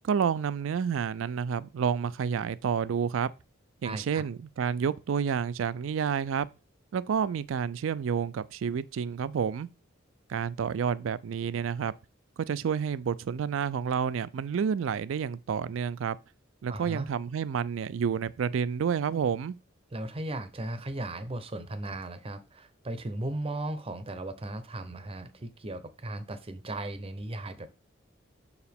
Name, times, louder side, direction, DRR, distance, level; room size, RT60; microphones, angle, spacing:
voice 1, 0.0-3.3 3.8-6.5 6.9-9.7 10.3-11.9 12.4-16.2 16.6-19.6, right 7 dB, 70° right, 0.3 m, -29 dB
voice 2, 3.8-4.2 16.7-17.1 19.9-27.7, right 1 dB, 30° right, 0.6 m, -36 dB
6.5 x 4.8 x 3.5 m
head